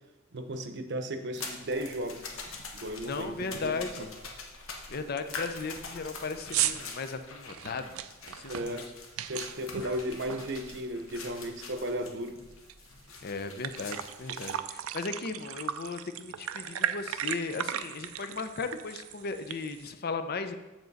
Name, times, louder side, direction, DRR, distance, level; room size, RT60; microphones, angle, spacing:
voice 1, 0.3-2.2 2.7-3.8 8.5-8.9 9.3-12.4, right 1 dB, 55° right, 7 dB, 0.8 m, -35 dB
sound 1, 1.3-14.6, left 4 dB, 80° left, 1.1 m, -44 dB
sound 2, 1.8-1.9 2.3-2.6 2.9-3.0 3.4-3.7 4.2-4.3 4.8-4.9 5.2-11.1 11.4-12.7 13.1-13.2 13.5-19.9, right 10 dB, 90° right, 0.4 m, -37 dB
voice 2, 3.0-4.1 4.9-8.8 13.2-20.5, left 4 dB, 45° left, 9 dB, 0.6 m, -36 dB
7.6 x 7.1 x 4.0 m, 1.1 s
head